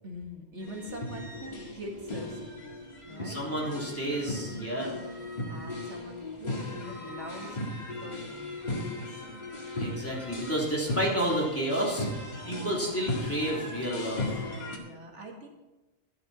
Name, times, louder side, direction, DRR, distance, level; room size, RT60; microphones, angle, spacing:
voice 1, 0.0-2.4 3.0-3.4 5.5-9.2 14.7-15.5, equal, 85° right, 0 dB, 2.4 m, -44 dB
sound 1, 0.6-14.8, left 1 dB, 40° left, 2.0 m, -37 dB
voice 2, 3.2-5.0 9.8-14.4, right 1 dB, 10° left, -4 dB, 3.3 m, -31 dB
12.0 x 11.5 x 4.3 m, 1.1 s
omnidirectional pair, 1.2 m